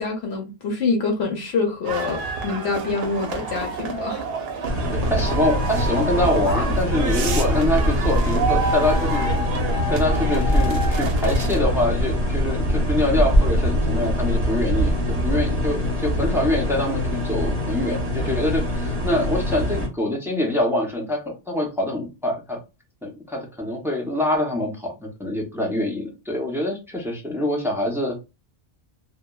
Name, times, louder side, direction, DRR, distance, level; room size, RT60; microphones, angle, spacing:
voice 1, 0.0-4.2, left 4 dB, 75° left, 0.9 m, -25 dB
sound 1, 1.8-11.6, right 3 dB, 70° right, 0.8 m, -28 dB
sound 2, 4.6-19.9, equal, 40° right, 0.9 m, -23 dB
voice 2, 4.9-9.3 9.9-14.9 15.2-22.6 23.0-28.2, left 1 dB, 5° right, 0.4 m, -25 dB
2.8 x 2.2 x 2.2 m
omnidirectional pair, 1.1 m